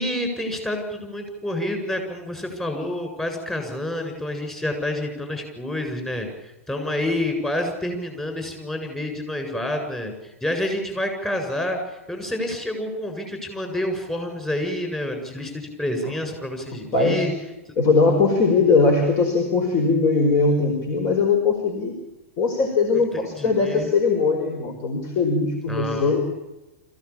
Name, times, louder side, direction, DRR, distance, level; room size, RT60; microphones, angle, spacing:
voice 1, 0.0-6.3 6.7-17.3 22.9-23.9 25.7-26.3, left 1 dB, 10° left, 4 dB, 7.7 m, -28 dB
voice 2, 16.9-17.3 17.8-21.9 22.4-26.2, left 4 dB, 40° left, 4 dB, 4.8 m, -20 dB
26.0 x 16.0 x 8.8 m, 1.0 s
hypercardioid pair, 110°, 7 cm